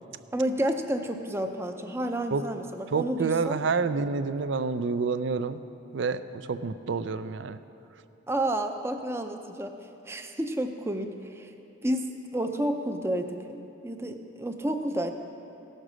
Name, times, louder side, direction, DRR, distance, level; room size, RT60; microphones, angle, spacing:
voice 1, 0.3-3.6 8.3-9.8 10.0-11.5 11.8-15.1, right 1 dB, 15° right, 6 dB, 0.5 m, -30 dB
voice 2, 2.9-5.6 5.9-7.6, right 4 dB, 65° right, 13 dB, 0.4 m, -28 dB
16.5 x 6.6 x 6.1 m, 2.8 s
head